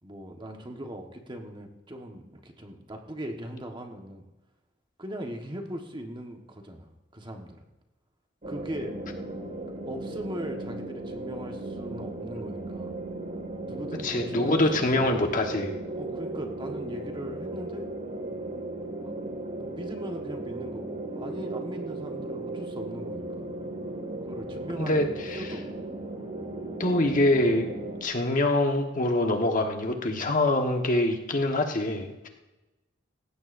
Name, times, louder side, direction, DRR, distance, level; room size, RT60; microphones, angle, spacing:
voice 1, 0.0-4.2 5.0-7.7 8.5-8.9 9.8-13.0 13.6-14.6 14.9-15.3 15.9-17.9 19.0-19.1 19.6-23.5 24.2-25.0 25.4-25.9, equal, 25° right, 3 dB, 1.3 m, -39 dB
sound 1, 8.4-28.0, right 2 dB, 40° right, 2.0 m, -36 dB
voice 2, 14.0-15.8 24.8-25.5 26.8-27.7 28.0-32.3, left 1 dB, 45° left, 3 dB, 1.3 m, -25 dB
18.0 x 15.0 x 2.6 m, 1.1 s
head